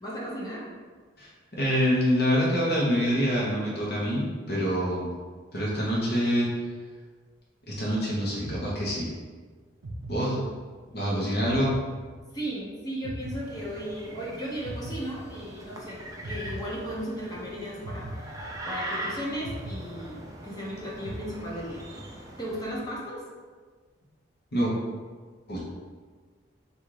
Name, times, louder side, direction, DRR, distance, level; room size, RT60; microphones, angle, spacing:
voice 1, 0.0-0.6 10.2-10.3 11.0-11.4 12.3-18.2 18.7-21.8 22.4-23.2, equal, 20° left, -5 dB, 0.8 m, -36 dB
voice 2, 1.2-5.1 5.5-6.5 7.7-9.1 10.1-10.4 10.9-11.7 24.5-24.7 25.5-25.6, equal, 55° left, -5 dB, 0.9 m, -26 dB
sound 1, 8.4-9.3 9.8-10.9 11.4-12.6 13.0-14.2 14.6-15.8 16.2-17.3 17.8-19.0 19.4-20.6 21.0-21.9, right 1 dB, 90° right, 0.5 m, -40 dB
sound 2, 13.2-23.0, right 1 dB, 20° right, 0.5 m, -41 dB
3.7 x 2.6 x 4.7 m, 1.5 s
head